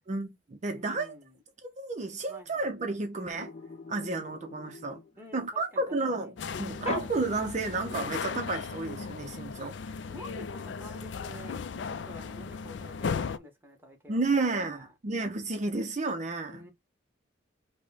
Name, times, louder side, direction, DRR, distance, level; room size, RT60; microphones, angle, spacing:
voice 1, 0.1-1.1 1.6-3.5 3.9-5.0 5.3-9.7 14.1-16.6, right 3 dB, 40° right, 0.5 m, -32 dB
voice 2, 0.7-1.4 2.3-2.7 5.2-6.4 10.1-14.9 16.5-16.7, left 1 dB, 10° right, 1.2 m, -49 dB
sound 1, 3.3-5.6 6.8-8.0, left 2 dB, 35° left, 0.9 m, -41 dB
sound 2, 6.4-13.4, left 5 dB, 70° left, 0.4 m, -36 dB
4.7 x 2.1 x 4.0 m
head